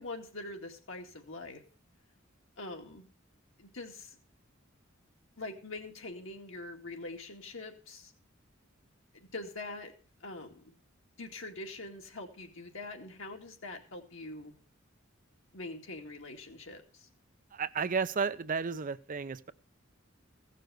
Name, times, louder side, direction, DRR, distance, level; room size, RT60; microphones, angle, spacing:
voice 1, 0.0-1.6 2.6-3.1 3.6-4.2 5.4-8.1 9.1-9.9 10.2-10.7 11.2-14.5 15.5-17.1, left 2 dB, 70° left, 2.3 m, -44 dB
voice 2, 17.6-19.5, right 5 dB, 40° right, 0.5 m, -32 dB
15.5 x 6.7 x 6.3 m
head